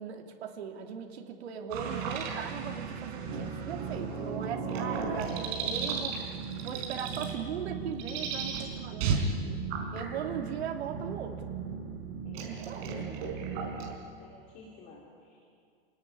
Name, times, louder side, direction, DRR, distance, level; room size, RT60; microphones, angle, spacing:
voice 1, 0.0-9.3 9.9-11.4 12.4-13.0, right 7 dB, 85° right, 2 dB, 2.8 m, -39 dB
sound 1, 1.7-13.9, right 5 dB, 35° right, 4.4 m, -35 dB
voice 2, 12.2-12.9 14.2-15.4, left 3 dB, 25° left, -2 dB, 3.4 m, -53 dB
28.0 x 18.5 x 9.8 m, 2.3 s
supercardioid pair, 175°, 31 cm